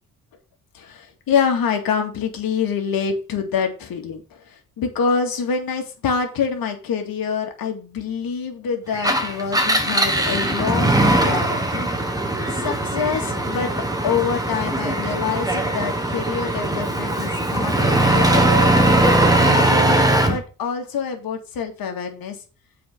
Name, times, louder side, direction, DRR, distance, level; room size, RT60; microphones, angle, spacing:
voice 1, 0.7-11.9 12.5-13.8 14.0-18.7 19.4-22.4, left 6 dB, 75° left, 4 dB, 2.2 m, -26 dB
Engine, 8.9-20.4, right 1 dB, 10° right, 1.6 m, -20 dB
7.8 x 4.7 x 5.9 m, 0.35 s
cardioid pair, 105°, 36 cm